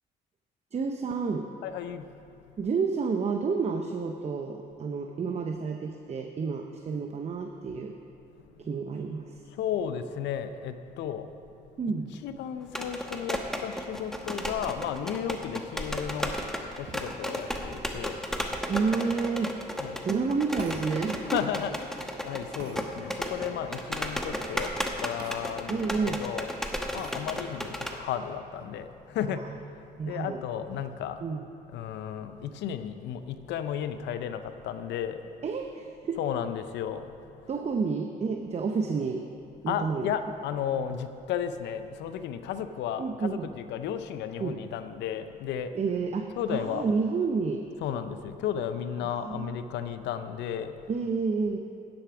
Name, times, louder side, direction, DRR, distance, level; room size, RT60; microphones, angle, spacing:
voice 1, 0.7-1.5 2.6-8.0 8.6-9.3 11.8-12.2 18.7-19.5 20.0-21.4 25.7-26.2 29.3-29.4 30.0-30.4 31.2-31.4 35.4-36.2 37.5-39.3 39.6-40.1 43.0-43.5 44.4-44.6 45.7-47.7 49.0-49.6 50.9-51.6, right 5 dB, 40° right, 4 dB, 0.7 m, -30 dB
voice 2, 1.6-2.0 9.6-11.3 12.2-16.5 16.8-18.2 19.8-20.0 21.3-24.7 25.0-26.5 26.9-29.4 30.1-31.2 31.7-35.2 36.2-37.0 39.7-45.7 46.4-46.9 47.8-50.7, left 9 dB, 80° left, 10 dB, 0.6 m, -33 dB
sound 1, 12.6-28.0, equal, ahead, 1.0 m, -34 dB
sound 2, 20.6-20.9 22.6-22.8 25.2-25.4 25.8-25.9 27.0-27.2, right 3 dB, 65° right, 1.4 m, -42 dB
10.0 x 7.9 x 5.9 m, 2.7 s
supercardioid pair, 75°, 18 cm